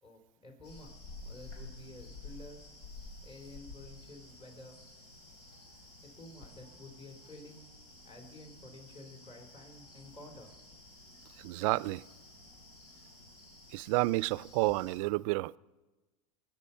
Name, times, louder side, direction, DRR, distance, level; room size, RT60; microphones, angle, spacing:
voice 1, 0.0-2.6 3.2-4.8 6.0-7.6 8.0-10.5, left 2 dB, 30° left, 3.2 m, -51 dB
sound 1, 0.6-15.0, left 2 dB, 85° left, 4.7 m, -52 dB
voice 2, 11.4-12.0 13.7-15.6, right 21 dB, 60° right, 0.4 m, -30 dB
23.5 x 9.2 x 5.5 m
supercardioid pair, 125°, 20 cm